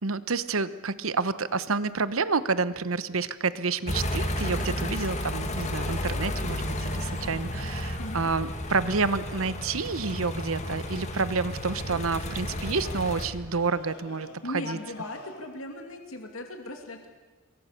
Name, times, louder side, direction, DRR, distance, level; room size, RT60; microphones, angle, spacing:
voice 1, 0.0-14.3 14.5-14.8, right 4 dB, 70° right, 15 dB, 1.0 m, -29 dB
sound 1, 3.9-13.3, left 1 dB, 35° left, 2.2 m, -32 dB
sound 2, 8.7-15.5, left 2 dB, 90° left, 4.0 m, -49 dB
voice 2, 14.4-17.1, left 2 dB, 70° left, 4 dB, 2.6 m, -38 dB
27.0 x 22.5 x 6.7 m, 1.2 s
head